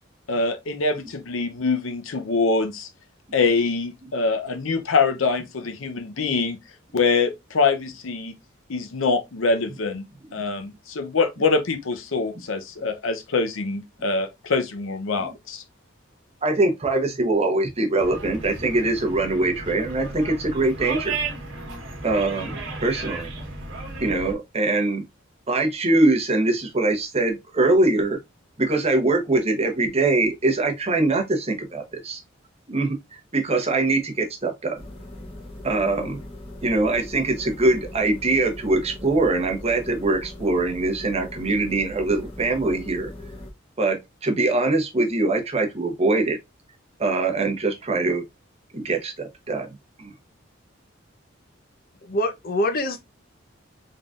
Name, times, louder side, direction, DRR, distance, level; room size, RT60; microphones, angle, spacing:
voice 1, 0.3-2.9 3.3-6.6 6.9-8.3 8.7-10.0 10.3-15.6, left 4 dB, 90° left, 0.7 m, -24 dB
voice 2, 16.4-21.1 22.0-23.3 24.0-25.0 25.5-28.2 28.6-32.2 32.7-34.8 35.6-36.2 36.6-43.1 43.8-46.4 47.0-48.2 48.7-49.7 50.0-50.1, right 2 dB, 30° right, 0.9 m, -23 dB
sound 1, 18.0-24.3, right 3 dB, 65° right, 1.3 m, -34 dB
sound 2, 34.7-43.5, left 1 dB, 30° left, 1.2 m, -40 dB
voice 3, 52.0-53.0, left 1 dB, 50° left, 0.7 m, -25 dB
3.7 x 3.7 x 2.4 m
head